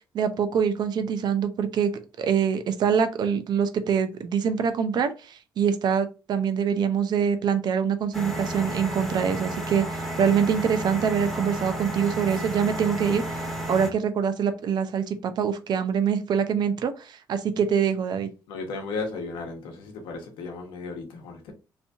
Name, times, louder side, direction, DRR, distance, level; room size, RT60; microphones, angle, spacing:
voice 1, 0.1-1.9 2.2-13.4 13.7-18.3, right 7 dB, 60° right, 0.7 m, -24 dB
sound 1, 8.1-13.9, right 1 dB, ahead, 1.3 m, -32 dB
voice 2, 18.5-21.5, left 3 dB, 85° left, 1.1 m, -35 dB
3.3 x 2.7 x 3.4 m
cardioid pair, 90°, 8 cm